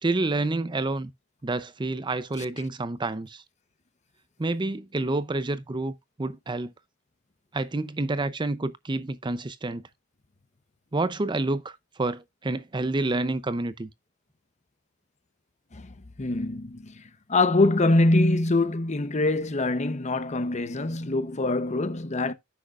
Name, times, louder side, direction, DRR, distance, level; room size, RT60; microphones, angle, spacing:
voice 1, 0.0-1.1 1.4-3.4 4.4-5.9 6.2-6.7 7.5-9.8 10.9-13.9, right 2 dB, 25° right, 0.6 m, -28 dB
voice 2, 16.2-17.0 17.3-22.3, left 2 dB, 35° left, 0.8 m, -24 dB
10.0 x 7.6 x 2.4 m
head